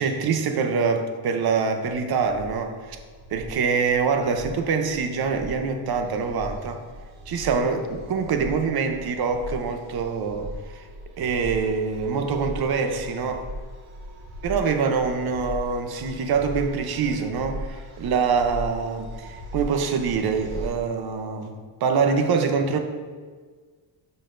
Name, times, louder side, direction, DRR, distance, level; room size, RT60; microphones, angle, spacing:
voice 1, 0.0-3.0 3.3-6.8 7.3-10.9 11.2-13.5 14.4-21.5 21.8-22.8, right 5 dB, 50° right, 6 dB, 0.7 m, -25 dB
sound 1, 2.1-20.7, equal, 75° right, 1.2 m, -39 dB
12.0 x 4.1 x 2.5 m, 1.5 s
cardioid pair, 145°, 48 cm